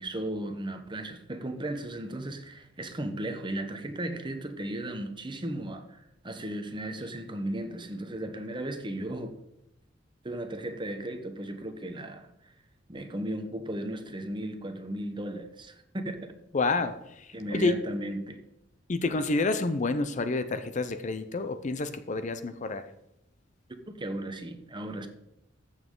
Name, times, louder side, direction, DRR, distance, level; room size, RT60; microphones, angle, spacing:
voice 1, 0.0-9.3 10.2-12.5 12.9-16.3 17.3-18.4 24.0-25.1, right 1 dB, 25° right, 1.0 m, -36 dB
voice 2, 16.5-17.7 18.9-22.9, left 3 dB, 40° left, 0.6 m, -29 dB
14.0 x 7.2 x 3.8 m
head